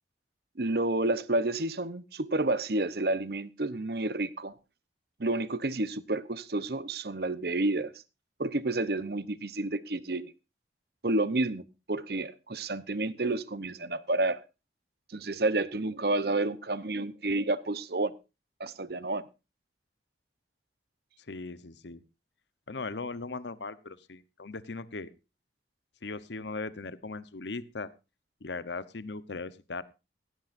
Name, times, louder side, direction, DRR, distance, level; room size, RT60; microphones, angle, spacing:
voice 1, 0.6-4.5 5.2-7.9 8.4-10.3 11.0-11.6 11.9-14.4 15.1-18.1 18.6-19.2, right 2 dB, 60° right, 0.9 m, -30 dB
voice 2, 21.3-22.0 22.7-25.1 26.0-27.9 28.4-29.8, left 3 dB, 75° left, 0.9 m, -38 dB
16.5 x 16.0 x 2.6 m
head